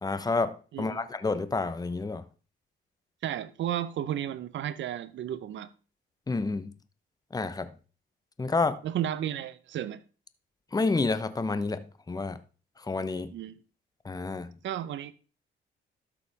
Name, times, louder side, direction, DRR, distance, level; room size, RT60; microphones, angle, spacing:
voice 1, 0.0-2.2 6.3-6.7 7.3-7.7 8.4-8.8 10.7-12.4 12.9-13.3 14.0-14.5, left 3 dB, 20° left, 0.9 m, -29 dB
voice 2, 0.7-1.1 3.2-5.7 8.8-10.0 13.3-13.6 14.6-15.1, right 11 dB, 70° right, 0.8 m, -33 dB
12.5 x 7.0 x 3.5 m
cardioid pair, 90°, 20 cm